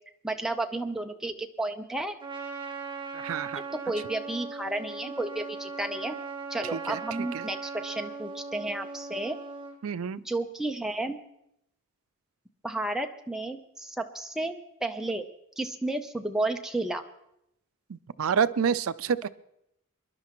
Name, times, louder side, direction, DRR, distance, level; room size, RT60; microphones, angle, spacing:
voice 1, 0.2-2.1 3.7-6.1 6.5-9.4 10.2-11.2 12.6-14.5 14.8-15.3 15.6-17.0, right 2 dB, ahead, 4 dB, 0.7 m, -32 dB
Trumpet, 2.2-9.8, right 4 dB, 20° right, 1.2 m, -39 dB
voice 2, 3.1-3.6 6.7-7.0 7.3-7.5 9.8-10.2 17.9-19.3, right 7 dB, 65° right, 15 dB, 0.4 m, -28 dB
25.0 x 11.0 x 3.1 m, 0.79 s
head